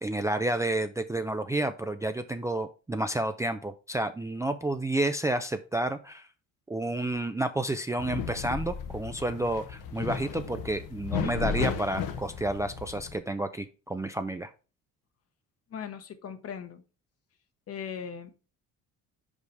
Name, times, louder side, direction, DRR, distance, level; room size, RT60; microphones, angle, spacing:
voice 1, 0.0-6.3 6.7-14.5, right 1 dB, 10° right, 8 dB, 0.4 m, -30 dB
sound 1, 8.0-13.1, left 7 dB, 75° left, 1.1 m, -34 dB
voice 2, 15.7-16.8 17.7-18.4, left 7 dB, 45° left, 10 dB, 1.1 m, -39 dB
5.4 x 5.0 x 4.7 m, 0.34 s
cardioid pair, 105°, 32 cm